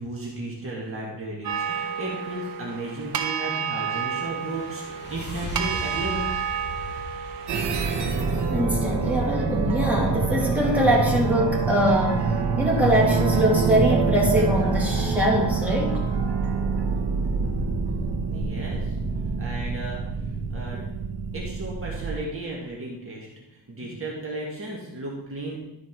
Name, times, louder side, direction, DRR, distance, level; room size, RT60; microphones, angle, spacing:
voice 1, 0.0-6.3 18.2-18.9 19.4-21.0 21.3-25.6, right 2 dB, 35° right, -4 dB, 1.8 m, -34 dB
sound 1, 1.4-7.7, right 7 dB, 60° right, 1.0 m, -30 dB
sound 2, 3.4-8.4, left 1 dB, 25° left, 2.2 m, -39 dB
sound 3, 7.5-22.2, right 5 dB, 80° right, 1.4 m, -26 dB
voice 2, 8.5-16.1, equal, 5° right, -3 dB, 2.0 m, -23 dB
12.0 x 4.9 x 4.7 m, 0.88 s
wide cardioid pair, 155°, 40 cm